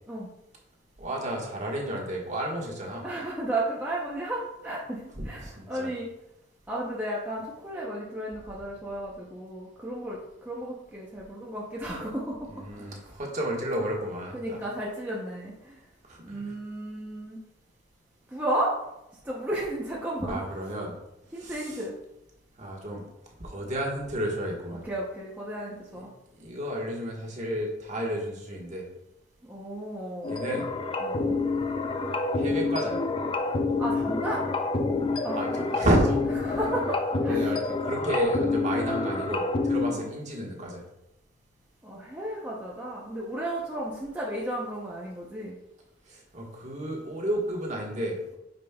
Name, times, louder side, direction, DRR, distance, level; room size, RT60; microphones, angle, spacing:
voice 1, 1.0-3.0 5.1-5.9 12.5-14.6 16.1-16.6 20.3-20.9 21.3-21.8 22.6-23.0 23.4-24.8 25.9-26.0 26.3-28.9 30.2-30.7 32.3-33.0 35.3-36.2 37.2-40.8 46.1-48.4, equal, 35° right, -2 dB, 1.4 m, -31 dB
voice 2, 3.0-6.1 6.7-12.9 14.3-15.8 16.2-17.4 18.3-18.8 19.2-20.4 21.3-21.9 24.8-26.1 29.4-30.4 31.0-31.4 33.8-34.4 35.2-35.6 36.4-37.5 39.9-40.0 41.8-45.6, right 1 dB, 10° right, -5 dB, 0.7 m, -33 dB
sound 1, 30.2-39.9, left 3 dB, 25° left, 0.4 m, -28 dB
9.0 x 5.2 x 2.3 m, 0.89 s
head